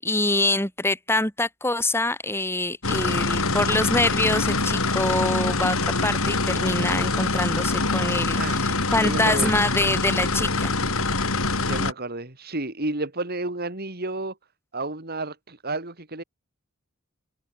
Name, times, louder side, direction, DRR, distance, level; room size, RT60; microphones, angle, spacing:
voice 1, 0.0-5.8 6.0-10.7, left 2 dB, 10° left, 7.5 m, -25 dB
sound 1, 2.8-11.9, left 3 dB, 70° left, 4.6 m, -24 dB
voice 2, 8.4-9.5 11.6-14.4 14.7-16.2, right 2 dB, 45° right, 3.1 m, -31 dB
head